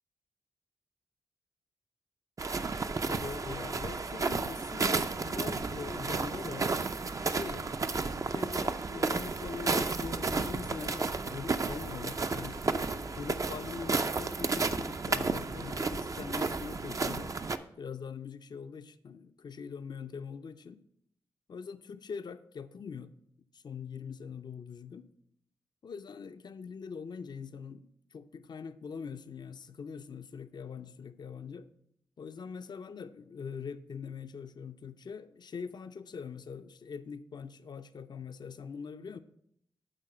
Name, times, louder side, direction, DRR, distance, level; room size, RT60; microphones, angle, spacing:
sound 1, 2.4-17.6, right 4 dB, 40° right, 0.5 m, -32 dB
voice 1, 3.1-6.7 7.2-17.3 17.8-20.8 21.5-23.1 23.5-25.1 25.8-31.7 32.2-39.2, left 6 dB, 55° left, 0.5 m, -43 dB
9.0 x 3.8 x 5.4 m
supercardioid pair, 40°, 9 cm